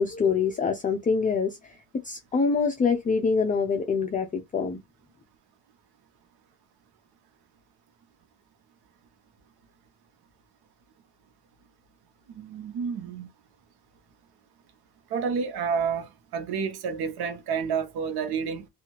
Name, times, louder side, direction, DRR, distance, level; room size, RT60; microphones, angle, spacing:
voice 1, 0.0-1.6 2.0-4.8, left 5 dB, 20° left, 0.4 m, -25 dB
voice 2, 12.3-13.3 15.1-18.7, right 6 dB, 80° right, 0.9 m, -30 dB
2.7 x 2.4 x 2.9 m
cardioid pair, 105°, 38 cm